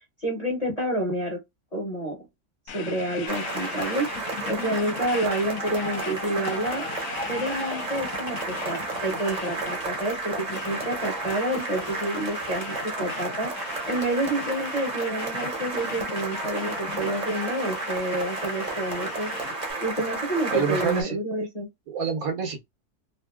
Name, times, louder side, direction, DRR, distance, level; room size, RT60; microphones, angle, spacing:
voice 1, 0.2-1.4 1.7-2.3 2.7-4.1 4.5-6.9 7.3-19.3 19.8-21.7, right 1 dB, 30° left, 1.0 m, -29 dB
sound 1, 2.7-19.7, left 7 dB, 65° left, 1.0 m, -40 dB
sound 2, 3.3-21.0, right 2 dB, 35° right, 0.9 m, -32 dB
voice 2, 20.5-21.2 21.9-22.6, right 6 dB, 70° right, 1.2 m, -26 dB
2.8 x 2.6 x 2.2 m
omnidirectional pair, 1.6 m